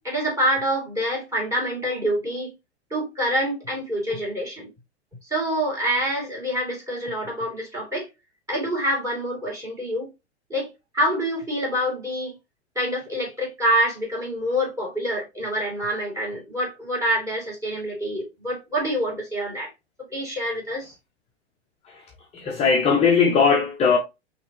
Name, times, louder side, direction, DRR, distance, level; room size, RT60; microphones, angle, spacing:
voice 1, 0.0-2.5 2.9-4.7 5.2-8.1 8.5-10.1 10.5-12.4 12.7-19.7 20.1-20.9, equal, 10° right, 2.7 m, -26 dB
voice 2, 22.3-24.0, left 5 dB, 20° left, 0.8 m, -19 dB
5.5 x 3.0 x 2.9 m
figure-of-eight pair, 100°, 34 cm